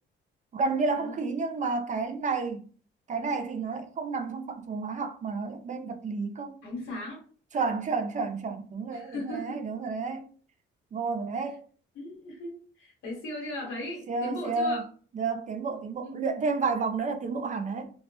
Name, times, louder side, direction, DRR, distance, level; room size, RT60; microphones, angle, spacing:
voice 1, 0.5-2.7 3.1-6.6 7.5-10.3 10.9-11.6 14.1-14.8 15.1-17.9, right 4 dB, 40° right, 0.4 m, -31 dB
voice 2, 6.6-7.3 8.9-9.7 11.3-11.5 11.9-14.8 16.0-16.2, left 1 dB, 80° left, 1.0 m, -38 dB
2.1 x 2.0 x 2.9 m
cardioid pair, 90°, 20 cm